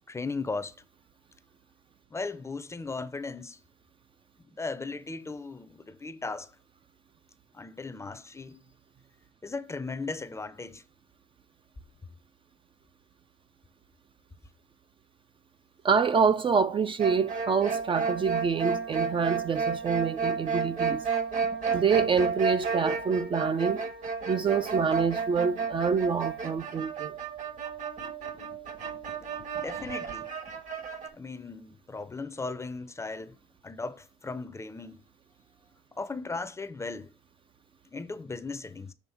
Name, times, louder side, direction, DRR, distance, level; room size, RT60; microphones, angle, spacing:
voice 1, 0.1-0.7 2.1-3.6 4.6-6.5 7.5-8.6 9.4-10.8 29.6-30.3 31.1-33.4 33.6-35.0 36.0-37.1 37.9-38.9, left 3 dB, 15° left, 0.6 m, -37 dB
voice 2, 15.8-21.0 21.7-23.8 24.3-27.1, right 6 dB, 30° right, 0.4 m, -26 dB
sound 1, 17.0-31.1, right 5 dB, 45° right, 1.2 m, -32 dB
7.2 x 3.4 x 5.8 m
cardioid pair, 110°, 17 cm